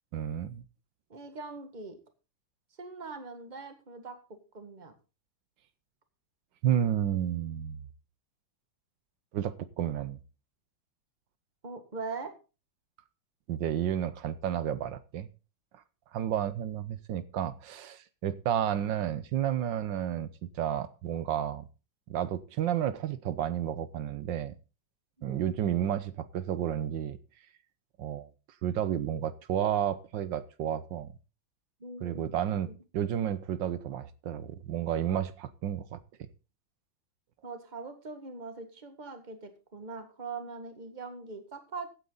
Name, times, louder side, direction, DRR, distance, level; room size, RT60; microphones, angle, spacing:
voice 1, 0.1-0.6 6.6-7.8 9.3-10.2 13.5-15.3 15.7-15.8 16.1-21.7 22.1-24.6 25.2-27.2 28.0-28.3 28.6-31.1 32.0-36.3, right 10 dB, 70° right, 14 dB, 1.4 m, -31 dB
voice 2, 1.1-2.0 2.8-4.9 11.6-12.3 25.3-25.4 31.8-32.8 37.4-41.9, right 4 dB, 25° right, 7 dB, 1.7 m, -42 dB
15.5 x 9.1 x 3.9 m, 0.32 s
omnidirectional pair, 2.2 m